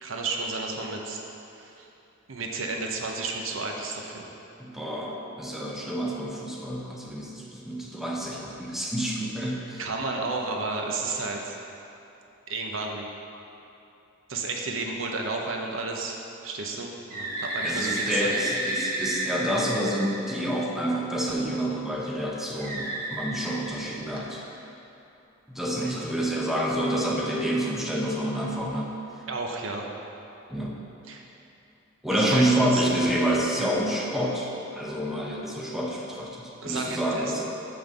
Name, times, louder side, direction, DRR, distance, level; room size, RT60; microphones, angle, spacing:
voice 1, 0.0-1.2 1.6-1.9 2.3-4.3 9.8-11.6 12.5-13.1 14.3-18.4 25.9-26.0 29.3-29.9 31.1-31.2 32.1-32.5 32.7-32.9 36.6-37.3, right 3 dB, 85° right, 1 dB, 0.8 m, -32 dB
voice 2, 4.6-9.8 17.6-24.4 25.5-28.9 30.5-30.8 32.0-37.4, right 1 dB, ahead, -3 dB, 0.8 m, -28 dB
Bird, 17.1-20.8 22.6-24.4, right 2 dB, 45° right, 1.5 m, -32 dB
5.9 x 5.3 x 6.7 m, 2.9 s
head